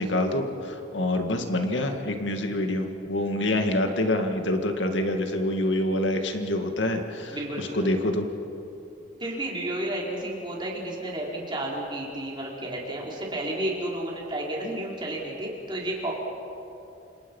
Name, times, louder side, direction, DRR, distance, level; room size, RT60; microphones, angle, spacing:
voice 1, 0.0-8.3, left 1 dB, 80° left, 5 dB, 2.1 m, -26 dB
voice 2, 7.3-7.9 9.2-16.1, right 1 dB, 25° right, -3 dB, 4.7 m, -32 dB
29.5 x 27.0 x 5.6 m, 2.8 s
head